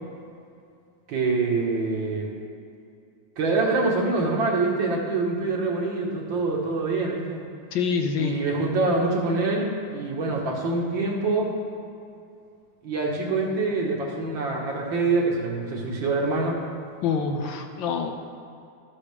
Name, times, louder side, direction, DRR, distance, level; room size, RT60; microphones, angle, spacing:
voice 1, 1.1-2.3 3.4-7.4 8.2-11.5 12.8-16.6, right 3 dB, 70° right, -1 dB, 2.0 m, -25 dB
voice 2, 7.7-8.3 17.0-18.1, left 6 dB, 75° left, 5 dB, 1.3 m, -26 dB
12.5 x 8.4 x 3.4 m, 2.5 s
omnidirectional pair, 2.3 m